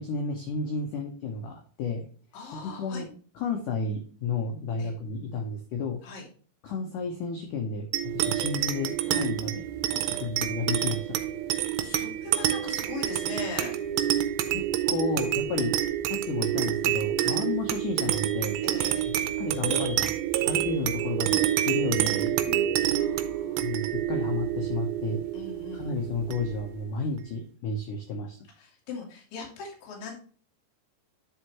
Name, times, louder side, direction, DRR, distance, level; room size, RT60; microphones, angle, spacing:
voice 1, 0.0-2.0 2.5-3.1 3.4-6.0 6.6-9.6 10.2-11.2 14.5-15.7 16.1-18.6 19.1-20.1 20.4-22.7 23.6-25.2 25.7-28.4, left 4 dB, 80° left, 2 dB, 1.9 m, -32 dB
voice 2, 2.3-3.0 4.8-4.9 6.0-6.3 9.9-10.2 11.8-13.7 17.2-17.4 18.6-19.2 23.0-23.7 25.3-25.9 28.6-30.2, left 4 dB, 55° left, -2 dB, 3.6 m, -40 dB
sound 1, 7.9-26.8, right 12 dB, 85° right, 2.8 m, -28 dB
10.0 x 5.0 x 3.0 m, 0.42 s
omnidirectional pair, 5.2 m